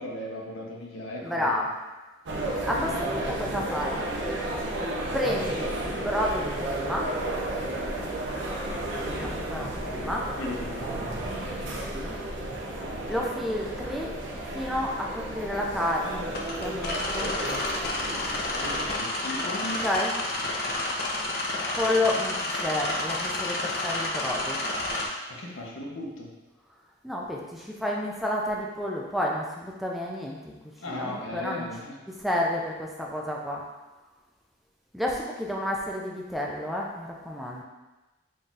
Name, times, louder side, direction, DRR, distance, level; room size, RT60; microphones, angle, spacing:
voice 1, 0.0-1.5 2.7-3.0 10.3-11.2 12.7-13.2 18.6-19.8 25.3-26.3 30.8-32.0, left 1 dB, 85° left, -2 dB, 0.8 m, -37 dB
voice 2, 1.2-1.7 2.6-4.0 5.1-7.1 9.1-10.3 11.9-12.2 13.1-14.1 14.5-17.3 19.8-20.1 21.8-24.6 27.0-30.4 30.9-31.7 32.2-33.6 34.9-37.6, left 1 dB, ahead, -2 dB, 0.4 m, -30 dB
sound 1, 2.3-19.0, right 1 dB, 65° right, 0.6 m, -32 dB
sound 2, 16.3-25.1, left 2 dB, 50° left, 0.5 m, -30 dB
4.0 x 3.8 x 2.4 m, 1.1 s
head